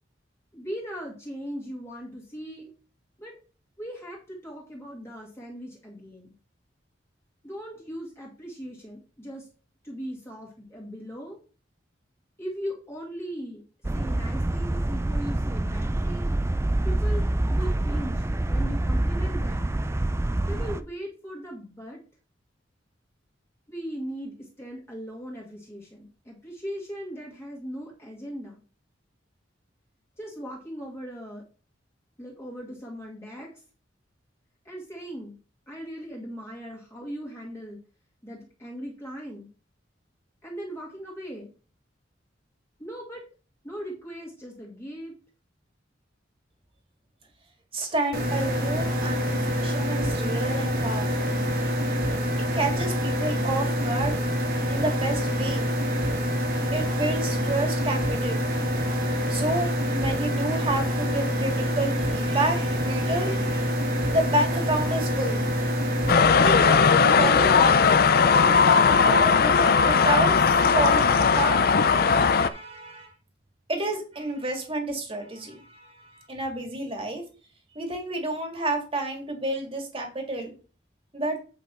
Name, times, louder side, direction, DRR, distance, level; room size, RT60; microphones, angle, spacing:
voice 1, 0.5-2.7 3.2-3.4 3.8-6.3 7.4-9.5 9.8-11.4 12.4-13.6 13.9-16.3 16.8-19.7 20.5-22.0 23.7-28.6 30.2-31.4 32.2-33.5 34.6-35.4 35.7-37.8 38.2-39.5 40.4-41.5 42.8-43.3 43.6-45.1, equal, 15° left, -2 dB, 2.0 m, -38 dB
sound 1, 13.8-20.8, right 1 dB, 15° right, 0.4 m, -26 dB
voice 2, 47.7-51.3 52.6-54.1 54.7-55.6 56.7-58.5 59.3-63.6 64.1-65.4 66.4-67.8 68.4-70.4 70.6-71.1 71.4-73.1 73.7-77.2 77.7-80.5 81.1-81.4, right 1 dB, 30° right, 3 dB, 2.1 m, -30 dB
sound 2, 48.1-66.1, equal, 55° right, 2.0 m, -26 dB
sound 3, 66.1-72.5, left 5 dB, 50° left, 0.5 m, -18 dB
8.4 x 5.4 x 4.3 m, 0.36 s
head